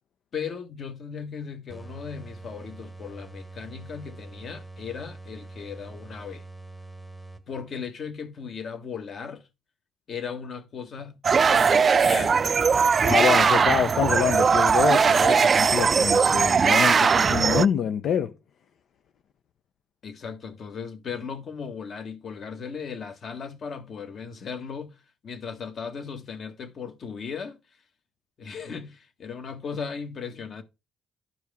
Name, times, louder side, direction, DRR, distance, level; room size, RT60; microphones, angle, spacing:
voice 1, 0.3-6.4 7.5-9.4 10.1-11.2 11.5-12.4 20.0-24.9 25.2-27.6 28.4-30.6, left 6 dB, 55° left, 1.6 m, -37 dB
sound 1, 1.7-7.8, right 2 dB, 10° left, 1.0 m, -44 dB
sound 2, 11.2-17.7, right 5 dB, 40° right, 0.4 m, -20 dB
voice 2, 13.0-18.3, left 8 dB, 70° left, 0.6 m, -26 dB
12.0 x 4.7 x 3.5 m
cardioid pair, 90°, 0 cm